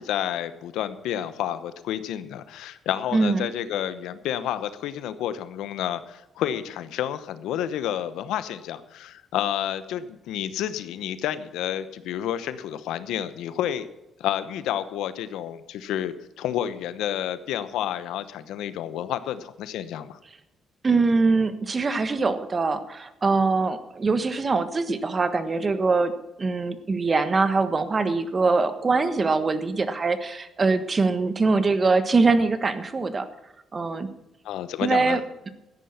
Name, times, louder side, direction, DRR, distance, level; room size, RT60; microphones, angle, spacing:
voice 1, 0.0-13.9 14.2-20.2 34.4-35.2, left 11 dB, 90° left, 13 dB, 0.9 m, -30 dB
voice 2, 3.1-3.5 20.8-26.1 26.4-33.3 33.7-34.1 34.8-35.2, right 3 dB, 35° right, 11 dB, 1.3 m, -23 dB
14.0 x 10.5 x 5.8 m, 0.94 s
cardioid pair, 90°, 0 cm